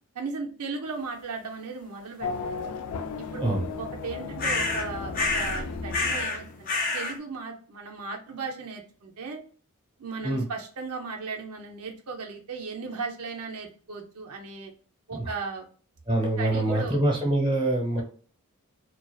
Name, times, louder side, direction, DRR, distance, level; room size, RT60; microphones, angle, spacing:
voice 1, 0.1-2.7 3.2-6.7 6.9-9.4 10.0-14.7 15.1-15.7 16.4-17.4, right 4 dB, 90° right, 2 dB, 0.6 m, -36 dB
Race car auto racing / Accelerating revving vroom, 2.2-6.9, left 4 dB, 80° left, 0.4 m, -35 dB
sound 1, 4.4-4.9 5.1-5.6 5.9-6.4 6.7-7.2, left 3 dB, 40° left, 0.7 m, -27 dB
voice 2, 16.1-18.0, right 1 dB, 20° right, -1 dB, 1.0 m, -25 dB
2.5 x 2.3 x 2.3 m, 0.42 s
head